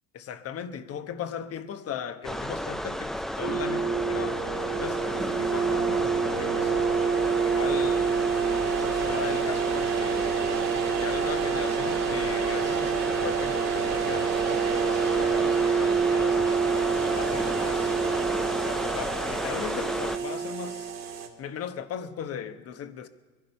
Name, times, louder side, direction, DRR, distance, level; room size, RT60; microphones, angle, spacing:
voice 1, 0.1-6.7 7.4-8.1 8.8-10.5 11.0-16.6 17.1-17.9 18.4-20.9 21.4-23.1, left 8 dB, 50° left, 1.1 m, -38 dB
sound 1, 2.2-20.2, equal, ahead, 0.5 m, -33 dB
sound 2, 3.4-21.3, right 6 dB, 55° right, 2.3 m, -27 dB
23.0 x 11.5 x 5.5 m
cardioid pair, 115°, 32 cm